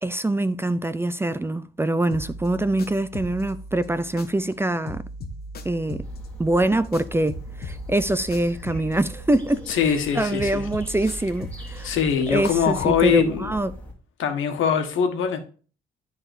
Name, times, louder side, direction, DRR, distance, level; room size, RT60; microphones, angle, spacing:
voice 1, 0.0-5.0 5.6-6.1 6.4-11.9 12.3-13.7, right 2 dB, 10° right, 0.4 m, -24 dB
sound 1, 2.1-4.6 4.9-10.1 10.4-13.2, equal, 50° left, 1.1 m, -38 dB
sound 2, 6.0-13.9, left 1 dB, 5° left, 2.7 m, -41 dB
voice 2, 9.7-10.7 11.8-13.5 14.2-15.4, left 8 dB, 80° left, 1.5 m, -22 dB
12.0 x 4.0 x 2.6 m
cardioid pair, 90°, 20 cm